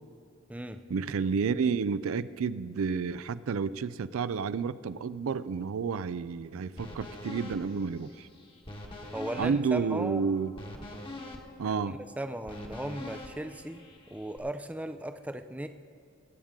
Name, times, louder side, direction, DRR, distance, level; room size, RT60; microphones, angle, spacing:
voice 1, 0.9-8.3 9.3-10.5 11.6-12.0, right 5 dB, 80° right, 15 dB, 0.4 m, -30 dB
sound 1, 6.8-14.4, left 1 dB, 25° left, 1.2 m, -45 dB
voice 2, 9.1-10.3 11.7-13.8 14.1-15.7, right 1 dB, 5° right, 8 dB, 0.4 m, -37 dB
22.0 x 8.9 x 3.6 m, 2.5 s
head